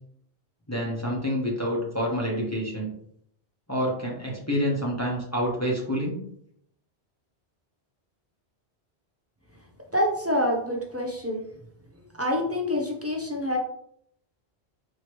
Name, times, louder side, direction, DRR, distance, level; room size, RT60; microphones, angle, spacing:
voice 1, 0.7-2.9 3.7-6.2, equal, 15° left, -3 dB, 0.9 m, -27 dB
voice 2, 9.9-11.4 12.2-13.6, left 1 dB, 25° right, 0 dB, 0.3 m, -26 dB
4.7 x 2.9 x 3.0 m, 0.69 s
omnidirectional pair, 1.1 m